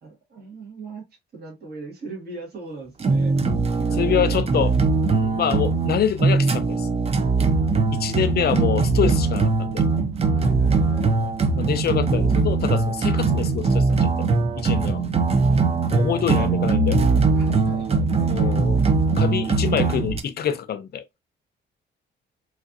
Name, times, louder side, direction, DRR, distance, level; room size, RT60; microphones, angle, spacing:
voice 1, 0.0-1.1 1.3-3.3 3.8-5.0 10.3-11.3 14.9-15.0 16.2-16.6 17.3-18.5, right 4 dB, 55° right, 1.5 m, -39 dB
sound 1, 3.0-20.2, right 4 dB, 30° right, 0.5 m, -21 dB
voice 2, 4.0-4.7 5.1-6.9 7.9-9.8 10.5-10.9 11.6-14.3 14.6-15.0 15.8-17.5 18.3-18.8 19.2-21.0, left 9 dB, 55° left, 0.5 m, -26 dB
3.1 x 2.5 x 2.6 m
cardioid pair, 90°, 20 cm